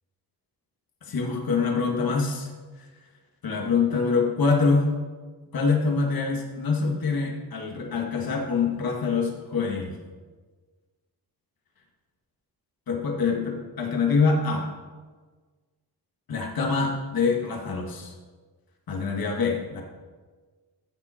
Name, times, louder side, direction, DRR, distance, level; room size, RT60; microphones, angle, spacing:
voice 1, 1.0-2.5 2.8-2.9 3.4-4.9 5.5-10.0 12.9-14.7 16.3-18.1 18.9-19.8, left 4 dB, 55° left, 1 dB, 2.1 m, -25 dB
15.5 x 5.6 x 4.5 m, 1.4 s
cardioid pair, 85°, 41 cm